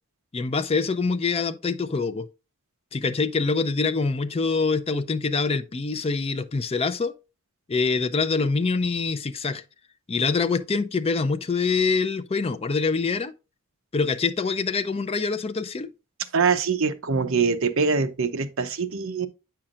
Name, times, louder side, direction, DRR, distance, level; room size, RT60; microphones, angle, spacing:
voice 1, 0.3-2.3 2.9-7.1 7.7-9.6 10.1-13.3 13.9-15.9, left 4 dB, 25° left, 0.4 m, -25 dB
voice 2, 16.3-19.3, right 5 dB, 60° right, 0.7 m, -23 dB
8.7 x 5.7 x 2.4 m
head